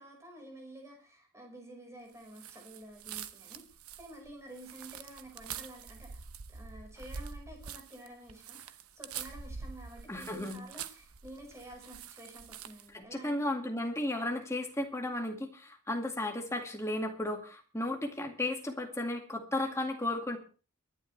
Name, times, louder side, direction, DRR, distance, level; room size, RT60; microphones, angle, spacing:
voice 1, 0.0-13.6, right 1 dB, 15° right, 1 dB, 5.3 m, -50 dB
sound 1, 2.3-12.9, right 7 dB, 80° right, 1.0 m, -45 dB
voice 2, 10.1-10.6 12.9-20.4, left 1 dB, 15° left, 3 dB, 2.2 m, -34 dB
23.5 x 11.0 x 3.4 m, 0.37 s
head